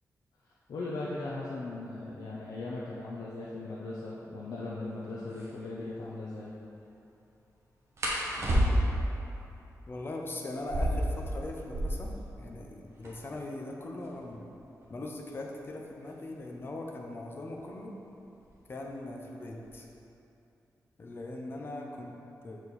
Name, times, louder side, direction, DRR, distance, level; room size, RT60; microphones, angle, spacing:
voice 1, 0.7-6.5, left 2 dB, 80° left, -6 dB, 0.7 m, -38 dB
sound 1, 4.8-4.9 5.3-5.5 8.0-9.1 10.5-12.2 12.5-12.6 12.8-13.4 14.0-16.6 17.6-17.9 18.3-18.7 19.1-19.8, equal, 50° right, 1.3 m, -31 dB
voice 2, 9.9-12.1 12.4-14.4 14.9-17.9 18.7-19.9 21.0-22.2 22.4-22.6, left 2 dB, 35° left, 0 dB, 0.7 m, -40 dB
6.9 x 4.5 x 4.1 m, 2.7 s
wide cardioid pair, 140°, 6 cm